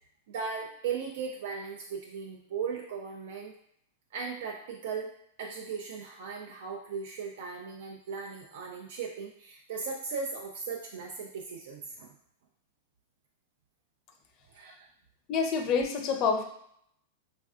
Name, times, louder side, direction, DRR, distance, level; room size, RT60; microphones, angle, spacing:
voice 1, 0.3-3.5 4.1-5.1 5.4-12.1 14.5-14.8, right 5 dB, 70° right, 0 dB, 0.4 m, -37 dB
voice 2, 15.3-16.4, left 5 dB, 40° left, 5 dB, 0.4 m, -27 dB
3.3 x 2.3 x 2.4 m, 0.69 s
hypercardioid pair, 120°, 0 cm